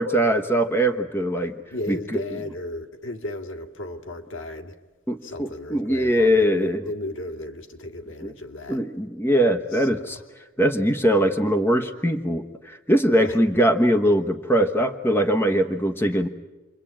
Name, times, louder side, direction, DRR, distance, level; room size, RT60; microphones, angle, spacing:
voice 1, 0.0-1.5 1.9-2.2 5.1-6.8 8.2-8.3 8.7-10.2 10.6-16.3, equal, 10° left, 1.2 m, -21 dB
voice 2, 1.7-4.8 5.2-8.8 9.7-10.1 13.1-13.4, left 1 dB, 80° left, 2.3 m, -35 dB
29.0 x 23.5 x 8.9 m
head